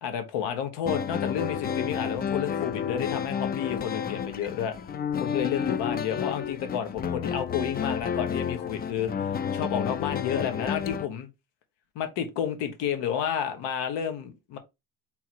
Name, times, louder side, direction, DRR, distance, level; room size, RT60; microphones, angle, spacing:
voice 1, 0.0-4.8 5.2-11.3 11.9-14.6, left 8 dB, 80° left, 1.2 m, -31 dB
sound 1, 0.9-11.1, left 7 dB, 25° left, 0.3 m, -31 dB
3.8 x 3.0 x 4.5 m
cardioid pair, 100°, 43 cm